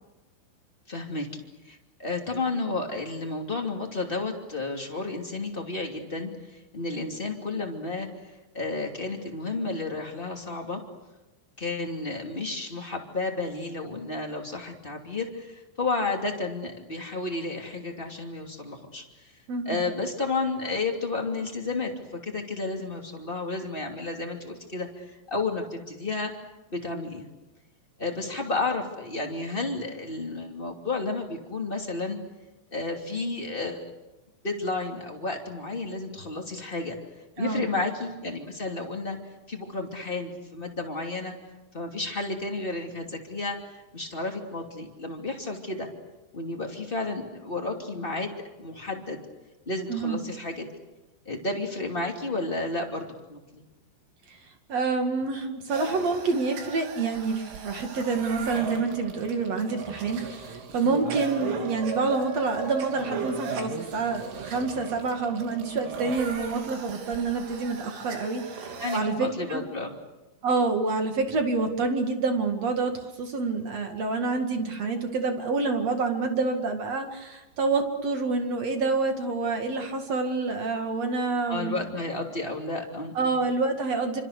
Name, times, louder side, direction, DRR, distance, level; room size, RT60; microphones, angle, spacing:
voice 1, 0.9-10.8 11.6-19.3 19.6-26.3 26.7-27.3 28.0-32.2 32.7-33.8 34.4-36.9 37.4-39.2 39.5-41.3 41.7-45.9 46.3-49.2 49.6-50.7 51.2-53.6 68.8-69.9 81.5-83.4, left 3 dB, 25° left, 1 dB, 1.2 m, -32 dB
voice 2, 19.5-19.8 37.4-37.6 49.9-50.2 54.3-54.4 54.7-69.6 70.4-81.8 83.1-84.2, right 4 dB, 50° right, 5 dB, 2.1 m, -27 dB
sound 1, 55.7-69.0, right 5 dB, 70° right, 5.4 m, -37 dB
28.5 x 26.5 x 6.7 m, 1.1 s
omnidirectional pair, 5.9 m